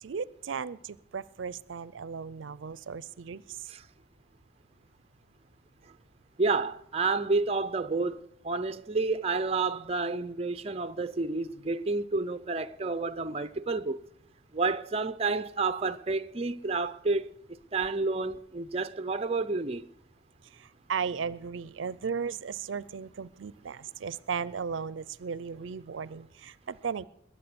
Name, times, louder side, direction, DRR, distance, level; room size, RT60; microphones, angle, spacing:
voice 1, 0.0-3.6 20.6-27.0, right 6 dB, 80° right, 0.5 m, -36 dB
voice 2, 6.4-14.0 14.5-17.3 17.7-19.9, right 3 dB, 35° right, 0.5 m, -30 dB
21.5 x 8.6 x 6.9 m
head